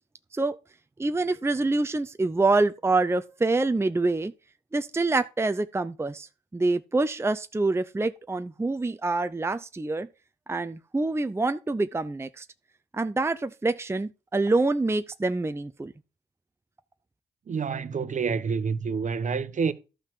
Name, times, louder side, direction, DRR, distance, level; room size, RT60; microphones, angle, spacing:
voice 1, 1.0-4.3 4.7-10.1 10.5-12.5 12.9-15.9, right 3 dB, 15° right, 0.7 m, -26 dB
voice 2, 17.5-19.7, right 5 dB, 45° right, 1.1 m, -28 dB
12.5 x 5.6 x 4.6 m
hypercardioid pair, 45°, 17 cm